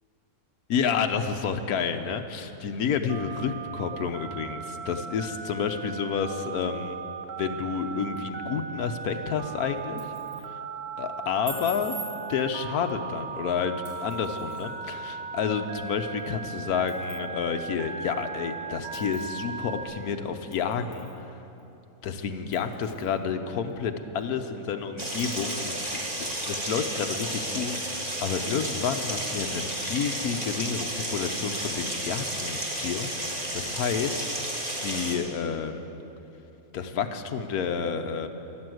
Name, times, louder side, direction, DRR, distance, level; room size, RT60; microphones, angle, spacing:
voice 1, 0.7-7.0 7.4-10.0 11.0-12.0 12.3-21.4 22.0-34.2 34.8-35.8 36.7-38.3, left 6 dB, 80° left, 7 dB, 1.3 m, -30 dB
Telephone, 3.1-19.8, right 5 dB, 85° right, 1.5 m, -38 dB
sound 1, 9.8-10.5 11.5-12.1 13.9-14.7 16.2-16.3 16.9-17.3 17.9-18.0 18.9-19.3 20.5-21.2 21.6-21.7 22.5-23.2 23.7-23.8 24.2-24.3 25.2-25.6, right 3 dB, 65° right, 3.0 m, -43 dB
sound 2, 25.0-35.2, right 1 dB, 25° right, 2.0 m, -32 dB
14.0 x 11.0 x 7.8 m, 2.9 s
omnidirectional pair, 1.6 m